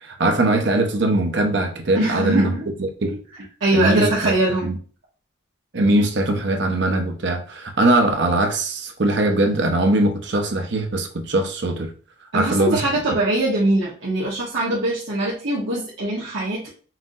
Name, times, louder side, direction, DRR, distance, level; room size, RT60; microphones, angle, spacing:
voice 1, 0.0-2.5 2.8-3.2 3.7-4.3 4.6-4.8 5.7-11.9 12.3-12.8, right 2 dB, 65° right, 4 dB, 0.8 m, -21 dB
voice 2, 1.9-2.7 3.6-4.7 12.3-16.7, right 1 dB, 80° right, -6 dB, 1.2 m, -22 dB
5.8 x 2.7 x 2.5 m, 0.39 s
head